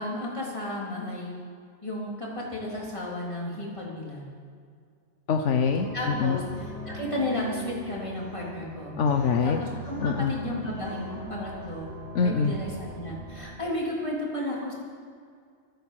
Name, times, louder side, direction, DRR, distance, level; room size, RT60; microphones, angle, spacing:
voice 1, 0.0-1.3 1.8-4.2 5.9-8.9 9.4-14.7, left 1 dB, 25° left, -4 dB, 3.6 m, -33 dB
voice 2, 5.3-6.4 9.0-9.6 10.0-10.3 12.1-12.5, left 5 dB, 75° left, 5 dB, 1.2 m, -24 dB
sound 1, 5.6-13.5, right 1 dB, 70° right, 2.9 m, -41 dB
14.0 x 12.0 x 7.7 m, 2.1 s
omnidirectional pair, 1.2 m